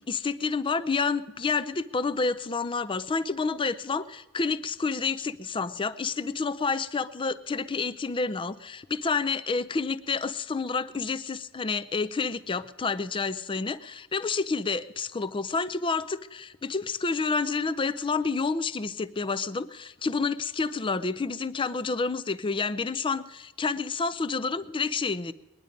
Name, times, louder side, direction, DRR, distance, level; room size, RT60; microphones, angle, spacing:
voice 1, 0.1-25.3, left 4 dB, 25° left, 16 dB, 0.4 m, -29 dB
21.0 x 10.5 x 5.2 m, 1.1 s
head